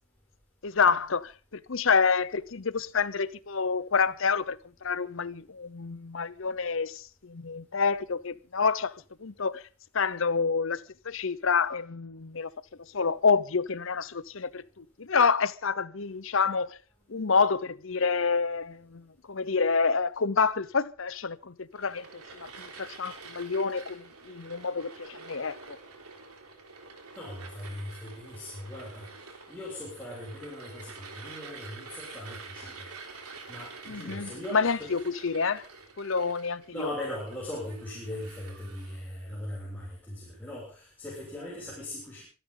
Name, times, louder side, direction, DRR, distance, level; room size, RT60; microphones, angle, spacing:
voice 1, 0.6-9.6 9.9-12.5 12.8-16.8 17.1-25.6 33.9-35.7 36.0-36.9, left 5 dB, 60° left, 0.8 m, -28 dB
sound 1, 21.7-39.0, right 4 dB, 90° right, 3.6 m, -47 dB
voice 2, 27.2-32.9 33.5-34.9 36.7-42.2, left 1 dB, 5° left, 6.9 m, -39 dB
25.5 x 13.0 x 3.9 m
head